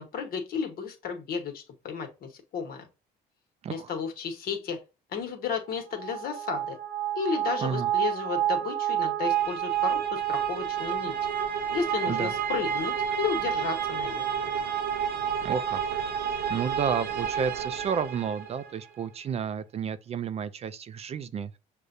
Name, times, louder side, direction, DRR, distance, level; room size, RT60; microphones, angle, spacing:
voice 1, 0.0-2.9 3.7-4.8 5.1-6.8 7.1-11.1 11.7-14.2, left 6 dB, 60° left, 1.2 m, -33 dB
sound 1, 5.9-18.7, right 9 dB, 65° right, 0.7 m, -29 dB
voice 2, 7.6-7.9 12.1-12.3 15.4-21.6, right 7 dB, 40° right, 0.4 m, -32 dB
6.4 x 2.2 x 2.6 m
cardioid pair, 110°, 17 cm